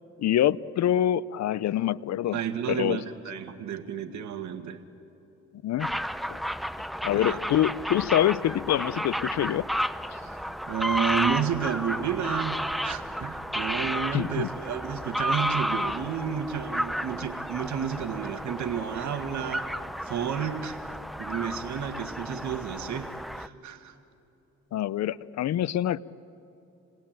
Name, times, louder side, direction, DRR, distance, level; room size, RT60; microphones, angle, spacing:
voice 1, 0.2-2.4 2.7-3.0 5.6-5.9 6.3-6.4 7.0-9.6 14.1-14.5 24.7-26.0, left 11 dB, 65° left, 19 dB, 0.6 m, -25 dB
voice 2, 2.3-4.8 7.1-7.4 10.2-19.7 20.0-20.8 21.2-23.9, right 8 dB, 70° right, 7 dB, 1.7 m, -31 dB
sound 1, 5.8-23.5, equal, ahead, 0.7 m, -32 dB
28.0 x 20.5 x 9.0 m, 3.0 s
cardioid pair, 90°, 30 cm